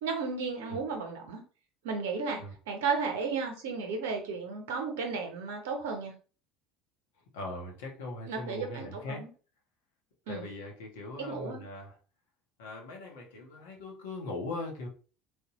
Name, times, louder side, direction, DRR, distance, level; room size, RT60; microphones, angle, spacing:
voice 1, 0.0-1.4 1.8-6.1 8.3-9.3 10.3-10.4 11.2-11.6, right 5 dB, 75° right, 3 dB, 0.8 m, -34 dB
voice 2, 7.3-9.2 10.3-11.9 12.6-14.9, left 2 dB, 80° left, 0 dB, 0.9 m, -40 dB
3.2 x 2.2 x 2.9 m, 0.38 s
hypercardioid pair, 70°, 0 cm